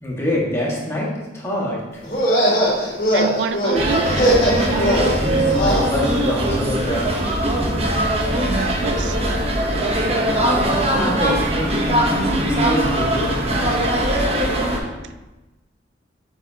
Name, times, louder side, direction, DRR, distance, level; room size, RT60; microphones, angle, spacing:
voice 1, 0.0-2.0 5.2-7.1 10.9-13.4, left 1 dB, 15° left, 1.9 m, -25 dB
sound 1, 2.0-5.9, equal, 50° left, 2.4 m, -20 dB
voice 2, 3.1-4.1 8.4-9.2, right 6 dB, 85° right, 0.4 m, -27 dB
sound 2, 3.7-14.8, right 1 dB, 35° right, 1.1 m, -20 dB
8.1 x 7.0 x 2.9 m
head